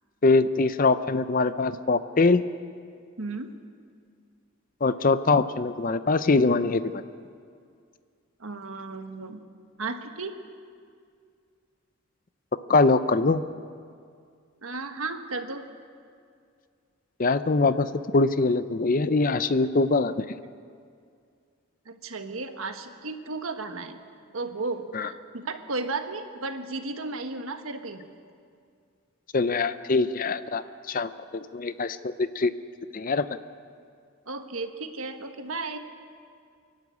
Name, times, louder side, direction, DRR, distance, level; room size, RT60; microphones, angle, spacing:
voice 1, 0.2-2.4 4.8-7.0 12.7-13.4 17.2-20.4 24.9-25.1 29.3-32.5 32.9-33.3, left 3 dB, 40° left, 13 dB, 0.6 m, -23 dB
voice 2, 3.2-3.5 8.4-9.4 9.8-10.3 14.6-15.7 21.9-24.0 24.3-28.0 34.3-35.8, right 3 dB, 70° right, 6 dB, 1.4 m, -34 dB
29.0 x 12.0 x 8.4 m, 2.3 s
head